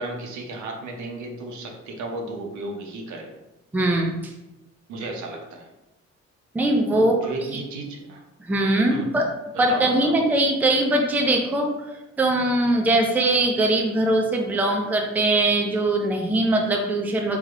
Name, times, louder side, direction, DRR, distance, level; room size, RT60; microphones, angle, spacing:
voice 1, 0.0-3.3 4.9-5.7 6.9-8.2 8.9-9.3 9.5-10.2, right 2 dB, 70° right, 2 dB, 0.7 m, -34 dB
voice 2, 3.7-4.3 6.5-7.2 8.5-9.3 9.6-17.4, right 2 dB, 5° right, 2 dB, 0.4 m, -21 dB
3.3 x 2.8 x 2.4 m, 0.97 s
cardioid pair, 90°, 30 cm